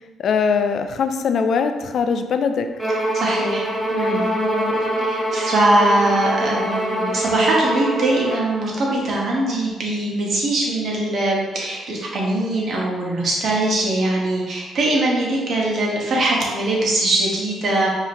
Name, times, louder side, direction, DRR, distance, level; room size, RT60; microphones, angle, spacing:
voice 1, 0.2-2.7 3.9-5.1, left 5 dB, 65° left, 7 dB, 0.3 m, -22 dB
Bowed string instrument, 2.8-8.5, right 1 dB, ahead, 0.7 m, -24 dB
voice 2, 3.1-3.6 3.9-4.2 5.0-17.9, right 2 dB, 60° right, -3 dB, 1.2 m, -21 dB
4.8 x 2.8 x 3.0 m, 1.2 s
cardioid pair, 90°, 0 cm